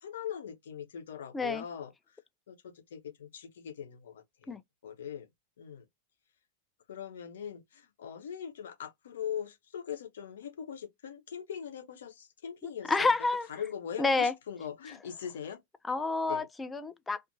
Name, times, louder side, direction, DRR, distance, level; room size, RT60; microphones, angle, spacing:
voice 1, 0.0-1.9 2.5-4.6 4.8-5.3 5.6-5.8 6.9-13.1 13.5-15.6 16.2-16.5, left 8 dB, 60° left, 0.7 m, -41 dB
voice 2, 12.6-13.5 14.0-14.3 15.9-17.2, left 3 dB, 15° left, 0.3 m, -29 dB
2.5 x 2.5 x 2.6 m
figure-of-eight pair, 90°, 0 cm